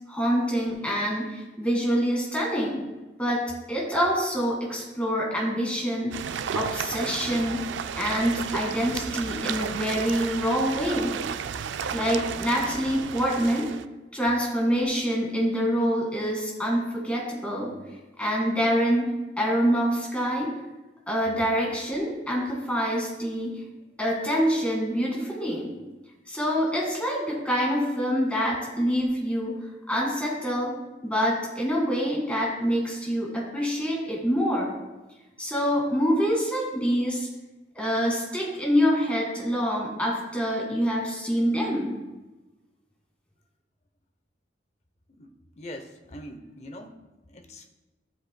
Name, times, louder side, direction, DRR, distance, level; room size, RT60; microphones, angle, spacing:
voice 1, 0.1-2.8 3.2-6.2 6.5-7.6 8.0-11.2 11.9-13.7 14.1-17.7 18.2-19.1 19.4-20.5 21.1-23.6 24.0-25.7 26.3-29.6 29.9-30.7 31.0-34.7 35.4-37.3 37.7-42.0, equal, 5° left, -3 dB, 1.9 m, -26 dB
sound 1, 6.1-13.8, right 7 dB, 75° right, 0.3 m, -33 dB
voice 2, 45.1-47.0 47.3-47.7, left 1 dB, 35° left, 6 dB, 0.7 m, -43 dB
12.5 x 7.8 x 2.2 m, 1.1 s
head